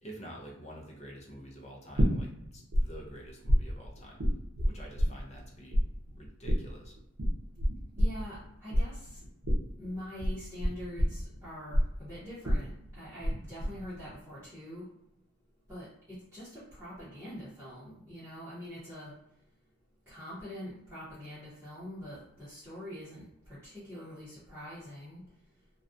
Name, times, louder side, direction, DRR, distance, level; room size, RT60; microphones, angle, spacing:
voice 1, 0.0-4.3 4.6-5.8 6.2-7.0, right 1 dB, 30° left, -1 dB, 0.5 m, -48 dB
sound 1, 2.0-2.8 3.1-5.5 5.7-13.3 13.6-14.1, equal, 70° right, 0.6 m, -27 dB
voice 2, 8.0-9.2 9.8-14.9 15.7-19.1 20.1-25.2, equal, 10° right, -14 dB, 0.8 m, -44 dB
2.3 x 2.3 x 2.5 m, 0.79 s
head